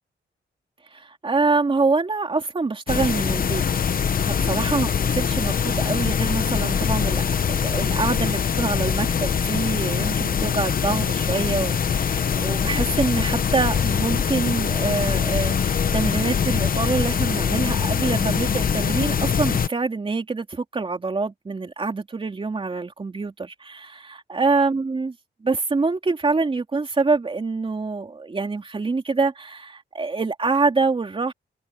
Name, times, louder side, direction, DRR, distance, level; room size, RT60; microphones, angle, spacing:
voice 1, 0.9-3.6 3.9-25.1 25.4-31.3, right 4 dB, 30° right, 3.4 m, -25 dB
sound 1, 2.9-19.7, left 7 dB, 50° left, 0.9 m, -23 dB
wide cardioid pair, 175°, 19 cm